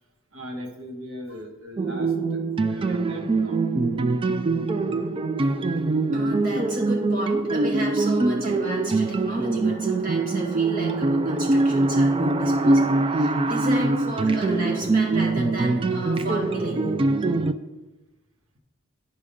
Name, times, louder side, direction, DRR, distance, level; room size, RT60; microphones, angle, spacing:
voice 1, 0.3-2.1 2.7-3.6, equal, 75° right, 2 dB, 1.4 m, -39 dB
sound 1, 1.8-17.5, right 3 dB, 25° right, 0.3 m, -23 dB
voice 2, 6.1-16.9, right 1 dB, 45° right, -3 dB, 2.2 m, -32 dB
9.4 x 3.6 x 6.7 m, 1.1 s
head